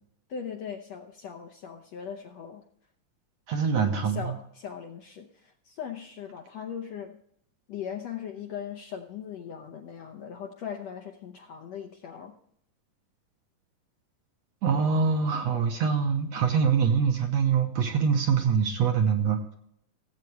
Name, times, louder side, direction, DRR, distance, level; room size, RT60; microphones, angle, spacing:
voice 1, 0.3-2.6 3.7-7.2 7.7-12.3, left 8 dB, 70° left, 4 dB, 1.6 m, -39 dB
voice 2, 3.5-4.3 14.6-19.5, right 6 dB, 65° right, 3 dB, 1.9 m, -24 dB
17.5 x 8.2 x 3.4 m, 0.70 s
omnidirectional pair, 3.8 m